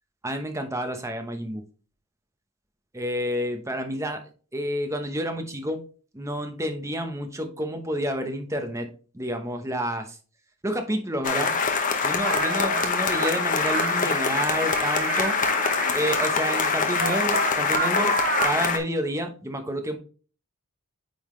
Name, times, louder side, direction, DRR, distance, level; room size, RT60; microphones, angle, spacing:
voice 1, 0.2-1.6 2.9-4.2 4.5-5.8 6.1-8.9 9.1-10.2 10.6-11.5 12.0-15.4 15.9-18.2 18.4-20.0, equal, 15° right, 5 dB, 0.9 m, -29 dB
sound 1, 11.2-18.8, left 5 dB, 35° left, 0.8 m, -24 dB
sound 2, 12.2-16.3 16.8-18.7, right 3 dB, 40° right, 0.9 m, -30 dB
8.7 x 3.8 x 3.2 m, 0.38 s
head